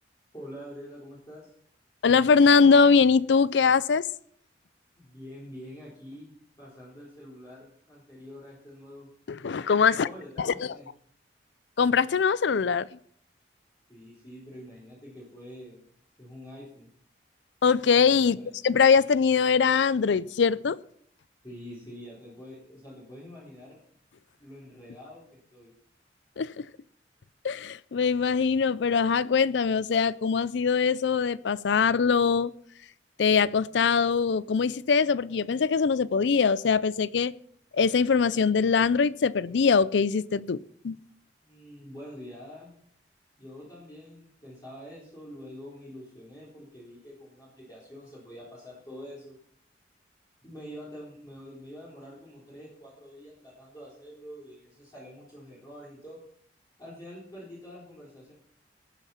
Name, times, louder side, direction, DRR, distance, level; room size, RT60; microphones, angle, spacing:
voice 1, 0.3-1.5 5.0-9.1 9.9-10.9 13.9-15.8 16.2-16.9 18.3-18.5 21.4-23.8 24.4-25.7 41.4-42.7 43.4-49.4 50.4-56.2 56.8-58.3, equal, 20° left, -7 dB, 4.1 m, -46 dB
voice 2, 2.0-4.1 9.3-10.1 10.4-10.7 11.8-12.9 17.6-18.4 18.6-20.8 26.4-26.7 27.4-32.5 33.2-37.3 37.7-40.6 40.8-41.0, left 5 dB, 75° left, 18 dB, 0.4 m, -22 dB
19.5 x 7.2 x 5.7 m, 0.63 s
head